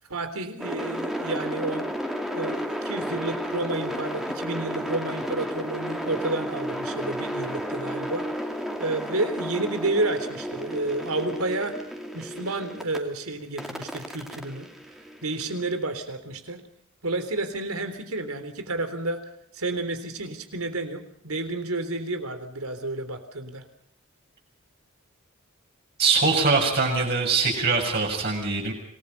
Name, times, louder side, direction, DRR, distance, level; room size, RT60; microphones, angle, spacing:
voice 1, 0.1-1.9 2.3-11.8 12.1-14.7 15.2-16.6 17.0-19.2 19.5-23.6, right 2 dB, 85° right, 9 dB, 3.6 m, -30 dB
sound 1, 0.6-13.0 13.6-15.7, equal, ahead, 2.4 m, -32 dB
voice 2, 26.0-28.7, right 4 dB, 50° right, -1 dB, 6.8 m, -22 dB
27.0 x 20.0 x 5.5 m, 0.71 s
head